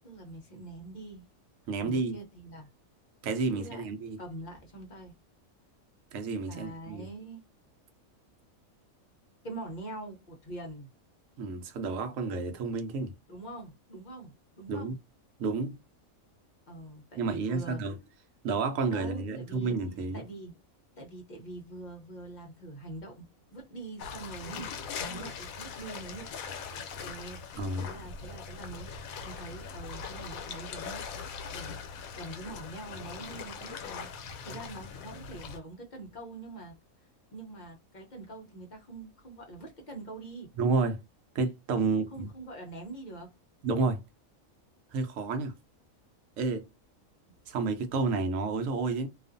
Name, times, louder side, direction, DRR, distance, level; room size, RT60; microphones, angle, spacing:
voice 1, 0.0-1.2 1.8-2.7 3.4-3.8 4.2-5.1 6.5-7.4 9.4-10.9 13.3-15.0 16.7-17.8 18.9-20.6 21.0-23.2 23.5-26.3 27.0-27.4 27.8-28.9 29.2-31.2 31.5-31.8 32.2-36.7 37.3-40.5 42.1-43.3, right 2 dB, 45° left, 0.6 m, -44 dB
voice 2, 1.7-2.2 3.2-4.2 6.1-7.1 11.4-13.1 14.7-14.9 15.4-15.8 17.2-18.0 18.4-20.2 27.6-27.9 34.5-34.6 40.6-41.0 41.3-42.3 43.6-44.0 44.9-45.5 46.4-46.7 47.5-49.1, right 4 dB, 70° right, 1.0 m, -30 dB
sound 1, 24.0-35.6, left 6 dB, 80° left, 1.0 m, -41 dB
2.4 x 2.4 x 2.5 m
omnidirectional pair, 1.5 m